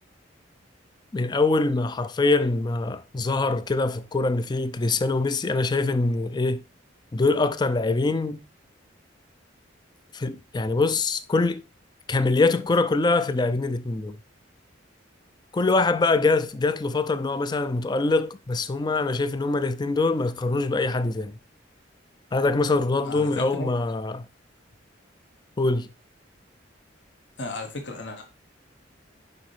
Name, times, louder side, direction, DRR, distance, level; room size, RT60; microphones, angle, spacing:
voice 1, 1.1-6.6 7.1-8.4 10.1-11.6 12.1-14.2 15.5-21.3 22.3-24.3 25.6-25.9, left 3 dB, 20° left, 0.4 m, -24 dB
voice 2, 23.0-23.7 27.4-28.2, left 2 dB, 65° left, 1.1 m, -34 dB
6.7 x 5.3 x 3.2 m
head